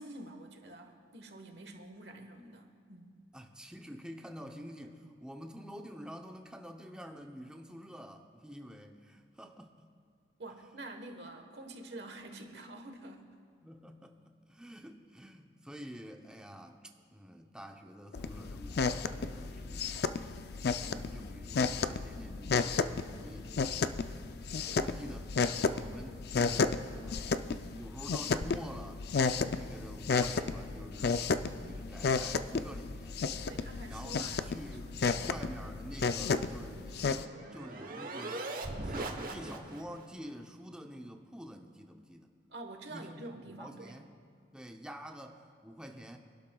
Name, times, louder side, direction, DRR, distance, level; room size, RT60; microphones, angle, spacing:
voice 1, 0.0-3.1 10.4-13.3 20.8-21.0 24.7-24.9 33.4-34.5 34.8-35.5 42.5-44.0, right 2 dB, 65° right, 5 dB, 1.3 m, -47 dB
voice 2, 3.3-9.9 13.6-20.0 20.8-23.9 24.5-27.4 27.7-29.0 29.5-33.2 33.9-38.4 38.8-42.3 42.9-44.1 44.5-46.2, equal, 5° right, 3 dB, 0.7 m, -48 dB
sound 1, 18.1-37.2, left 4 dB, 60° left, 0.4 m, -33 dB
sound 2, 36.7-40.0, right 2 dB, 50° right, 1.0 m, -40 dB
26.0 x 12.0 x 2.3 m, 2.1 s
head